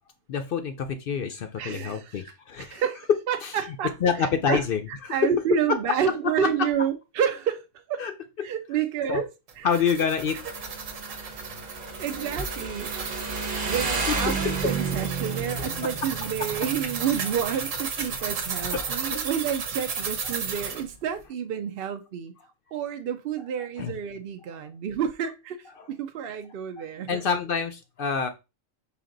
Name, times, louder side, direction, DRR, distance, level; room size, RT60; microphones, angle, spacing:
voice 1, 0.3-2.8 3.4-3.5 4.0-5.2 5.7-5.8 8.0-8.1 8.4-8.5 9.1-9.2 9.6-11.0 11.8-11.9 13.2-14.4 18.2-18.3 18.7-19.2 23.8-23.9 24.6-24.7 25.8-25.9 26.8-28.3, left 6 dB, 60° left, 0.6 m, -28 dB
voice 2, 1.5-2.2 2.6-4.6 5.1-8.0 8.4-9.3 9.6-9.8 12.0-12.9 13.7-22.3 22.7-27.2, right 8 dB, 60° right, 0.6 m, -29 dB
sound 1, 9.5-20.8, right 5 dB, 90° right, 1.3 m, -34 dB
Motorcycle, 10.3-18.5, right 4 dB, 45° right, 1.0 m, -33 dB
5.1 x 2.8 x 3.8 m
omnidirectional pair, 1.3 m